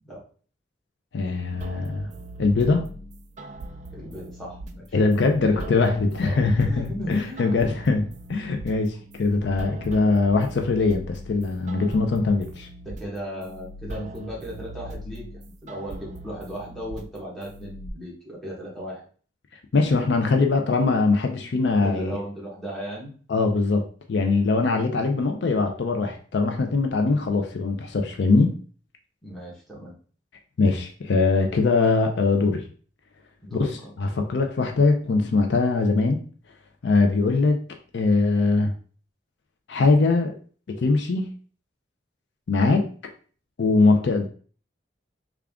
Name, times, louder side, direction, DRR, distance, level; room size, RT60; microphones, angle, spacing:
voice 1, 1.1-2.1 2.4-2.9 4.9-12.7 19.7-22.2 23.3-28.5 30.6-32.6 33.5-36.2 36.8-37.6 37.9-38.7 39.7-40.4 40.7-41.3 42.5-42.9 43.6-44.3, left 3 dB, 60° left, 5 dB, 0.4 m, -22 dB
sound 1, 1.6-17.9, right 1 dB, 40° right, 0.3 m, -40 dB
voice 2, 3.9-5.0 5.4-5.7 6.2-7.5 8.9-9.0 12.8-15.3 15.6-19.0 21.8-23.1 29.2-29.9 33.4-33.9, equal, ahead, -6 dB, 1.1 m, -36 dB
3.5 x 2.4 x 3.5 m, 0.42 s
head